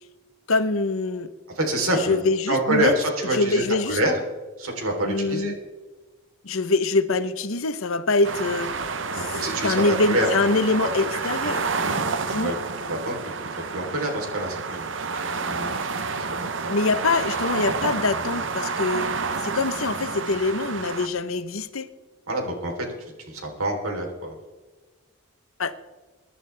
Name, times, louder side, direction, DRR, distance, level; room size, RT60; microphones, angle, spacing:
voice 1, 0.5-1.3 1.9-2.9 3.3-4.0 5.0-5.6 6.4-8.8 9.1-9.3 9.6-11.6 12.3-12.5 16.7-19.1 19.4-21.9 25.6-25.7, left 3 dB, 80° left, 0.9 m, -24 dB
voice 2, 1.6-2.2 2.5-4.2 4.6-5.5 9.1-9.8 10.0-10.3 10.8-11.1 11.4-11.6 11.8-11.9 12.3-12.5 12.8-13.2 13.7-14.6 15.0-15.7 16.1-16.3 16.6-16.7 22.3-22.7 23.3-24.4, right 1 dB, 90° right, 3.7 m, -26 dB
sound 1, 8.2-21.1, right 4 dB, 60° right, 0.8 m, -29 dB
23.0 x 11.0 x 3.4 m
head